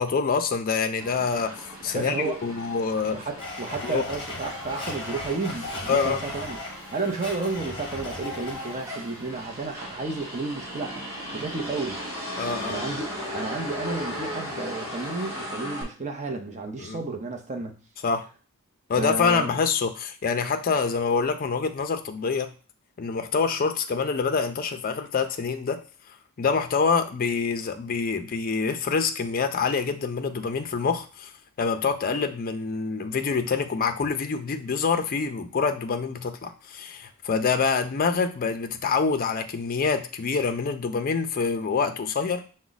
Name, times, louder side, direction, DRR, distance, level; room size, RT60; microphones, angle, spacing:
voice 1, 0.0-1.5 1.8-3.2 3.8-4.0 5.9-6.2 12.4-12.9 16.8-17.0 18.0-18.2 18.9-22.5 23.0-25.8 26.4-31.3 31.6-42.4, left 5 dB, 40° left, 0.4 m, -26 dB
Motor vehicle (road), 1.0-15.8, equal, 15° right, 1.2 m, -37 dB
voice 2, 1.8-2.4 3.1-6.6 6.9-12.0 12.6-17.8 19.0-19.6, right 3 dB, 35° right, 0.6 m, -32 dB
Domestic sounds home sounds, 3.4-9.1, left 2 dB, 25° left, 1.0 m, -37 dB
5.9 x 2.1 x 3.9 m
head